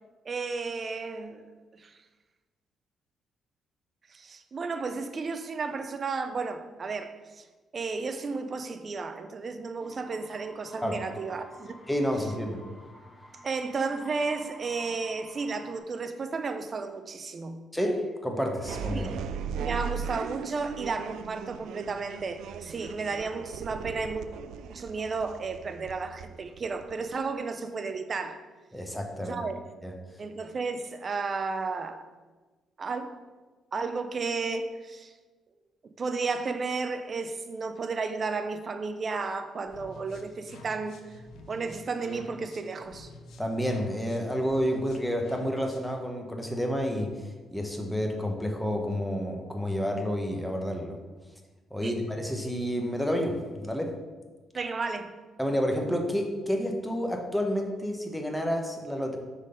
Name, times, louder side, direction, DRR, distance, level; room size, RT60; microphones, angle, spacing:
voice 1, 0.2-1.5 1.7-2.0 4.1-7.5 7.7-11.8 13.4-17.6 18.9-19.2 19.6-24.3 24.7-28.4 29.2-29.5 30.2-32.1 32.8-33.2 33.7-35.1 35.8-41.0 41.5-43.1 51.8-52.0 54.5-55.1, right 4 dB, 40° right, 0.6 m, -33 dB
sound 1, 9.8-15.8, left 1 dB, 25° left, 1.4 m, -51 dB
voice 2, 11.9-12.6 17.7-19.1 28.7-29.4 29.8-29.9 43.4-51.0 51.7-53.9 55.4-59.2, equal, 5° left, 1.1 m, -30 dB
sound 2, 18.6-27.2, right 7 dB, 80° right, 0.3 m, -38 dB
sound 3, 39.6-46.0, left 2 dB, 75° left, 0.8 m, -50 dB
6.3 x 4.0 x 5.2 m
cardioid pair, 90°, 0 cm